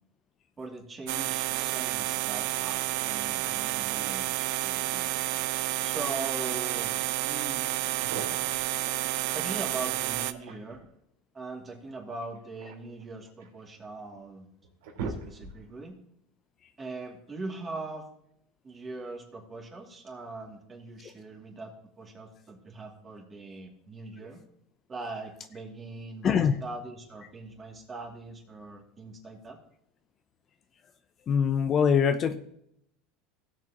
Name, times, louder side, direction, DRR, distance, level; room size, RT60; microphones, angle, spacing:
voice 1, 0.6-5.1 5.8-7.0 7.2-7.7 9.3-10.8 11.3-14.5 15.0-15.9 16.8-18.0 18.6-24.4 24.9-29.6, right 3 dB, 25° right, 0 dB, 2.6 m, -41 dB
sound 1, 1.1-10.3, right 16 dB, 70° right, 0.6 m, -30 dB
sound 2, 8.0-8.7 10.1-10.9 12.2-13.6 14.2-14.3 14.6-15.8, right 4 dB, 85° right, 2.7 m, -40 dB
voice 2, 26.2-26.6 31.3-32.4, left 7 dB, 35° left, 9 dB, 0.6 m, -23 dB
17.5 x 7.7 x 3.0 m, 0.74 s
supercardioid pair, 130°, 0 cm